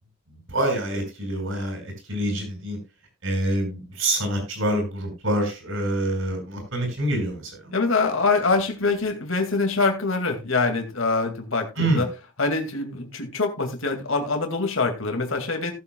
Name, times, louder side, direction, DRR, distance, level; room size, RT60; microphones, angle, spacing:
voice 1, 0.3-2.8 3.2-7.7 11.8-12.1, right 1 dB, 70° right, 4 dB, 4.9 m, -26 dB
voice 2, 7.7-12.1 12.4-15.7, left 3 dB, 75° left, 4 dB, 2.2 m, -24 dB
17.5 x 7.6 x 2.3 m, 0.27 s
head